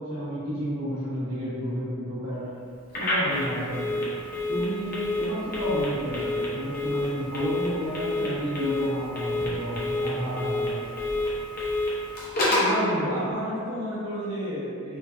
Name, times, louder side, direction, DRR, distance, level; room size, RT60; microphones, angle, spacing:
voice 1, 0.0-2.4 2.9-4.0 4.5-10.8, equal, 60° right, -11 dB, 1.3 m, -31 dB
Telephone, 2.9-12.8, left 1 dB, 40° left, 0.7 m, -29 dB
voice 2, 12.5-15.0, equal, 90° right, -12 dB, 1.0 m, -30 dB
3.7 x 2.7 x 2.5 m, 2.4 s
head